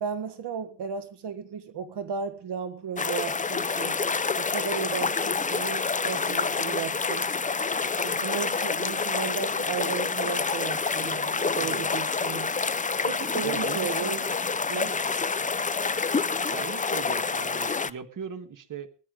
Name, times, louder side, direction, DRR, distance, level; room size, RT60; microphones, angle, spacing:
voice 1, 0.0-4.0 4.4-7.3 8.0-12.5 13.0-14.2 14.7-15.0, right 7 dB, 70° right, 1.5 m, -34 dB
sound 1, 3.0-17.9, left 4 dB, 20° left, 0.6 m, -28 dB
voice 2, 11.6-12.0 13.4-14.2 16.5-18.9, right 7 dB, 45° right, 1.6 m, -38 dB
22.0 x 11.0 x 3.8 m
cardioid pair, 120°, 42 cm